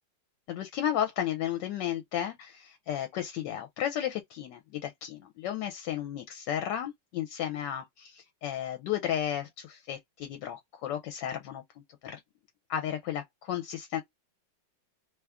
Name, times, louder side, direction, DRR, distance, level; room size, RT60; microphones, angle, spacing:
voice 1, 0.5-11.6 12.0-12.2 12.7-14.0, left 10 dB, 75° left, 1.2 m, -33 dB
3.0 x 2.4 x 3.4 m
omnidirectional pair, 2.0 m